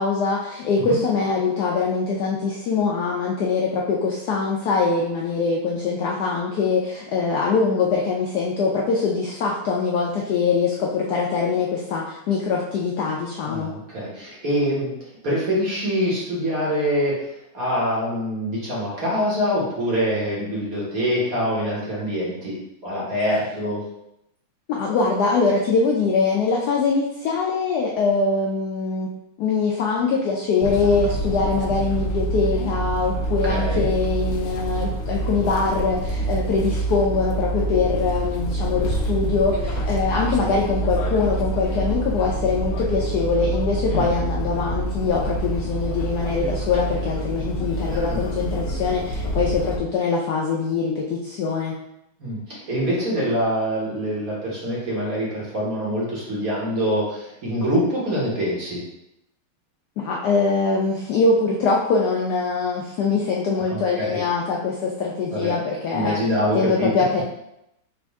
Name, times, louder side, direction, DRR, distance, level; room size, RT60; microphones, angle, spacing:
voice 1, 0.0-13.7 24.7-29.1 29.4-51.8 60.0-66.2 66.5-67.2, left 4 dB, 90° left, -2 dB, 0.8 m, -23 dB
voice 2, 13.5-14.9 15.2-17.2 17.5-22.5 22.8-23.8 33.5-33.9 40.4-40.5 43.9-44.0 47.9-48.2 52.2-58.8 63.7-64.2 65.3-65.6 65.9-66.9, equal, 45° right, -6 dB, 1.5 m, -25 dB
sound 1, 30.6-49.8, right 1 dB, 70° left, 1.2 m, -26 dB
5.1 x 2.5 x 3.5 m, 0.84 s
omnidirectional pair, 2.3 m